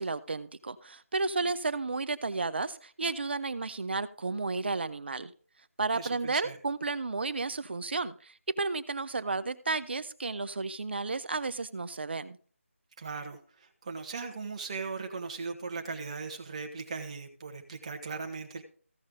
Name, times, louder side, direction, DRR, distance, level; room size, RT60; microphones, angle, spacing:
voice 1, 0.0-5.3 5.8-12.4, right 3 dB, 50° right, 0.7 m, -32 dB
voice 2, 5.9-6.6 13.0-18.6, right 4 dB, 30° right, 1.4 m, -38 dB
15.5 x 5.4 x 3.8 m
figure-of-eight pair, 170°, 8 cm